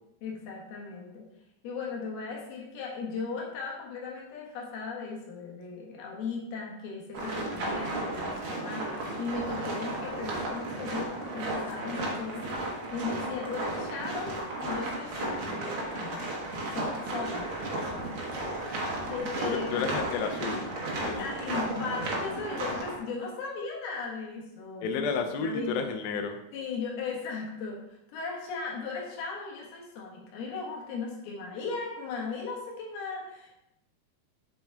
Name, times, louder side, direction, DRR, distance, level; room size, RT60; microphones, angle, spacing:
voice 1, 0.2-1.3 1.6-16.3 16.7-18.1 18.5-18.7 19.0-19.9 20.9-25.0 25.4-25.9 26.5-33.5, left 4 dB, 70° left, -2 dB, 3.3 m, -37 dB
sound 1, 7.1-23.0, right 2 dB, 80° right, 1.1 m, -34 dB
voice 2, 19.4-20.7 21.0-21.4 24.8-26.4, left 5 dB, 90° left, 6 dB, 2.9 m, -31 dB
7.4 x 7.0 x 3.5 m, 0.86 s
omnidirectional pair, 4.7 m